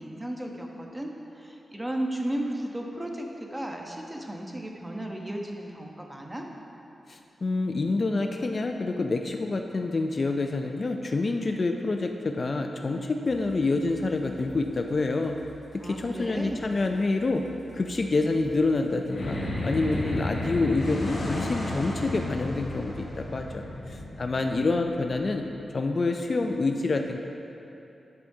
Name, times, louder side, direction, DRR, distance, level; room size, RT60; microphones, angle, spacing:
voice 1, 0.0-6.4 15.8-16.7, right 1 dB, 15° right, 1 dB, 0.8 m, -34 dB
voice 2, 7.1-15.4 15.8-17.4 17.7-19.4 19.6-23.6 23.9-25.5 25.7-27.2, left 3 dB, 45° left, 4 dB, 0.4 m, -27 dB
sound 1, 13.2-20.6, right 2 dB, 60° left, 1.8 m, -50 dB
sound 2, 19.1-25.7, left 1 dB, 80° left, 1.7 m, -33 dB
10.5 x 7.0 x 2.7 m, 2.9 s
wide cardioid pair, 105°, 0 cm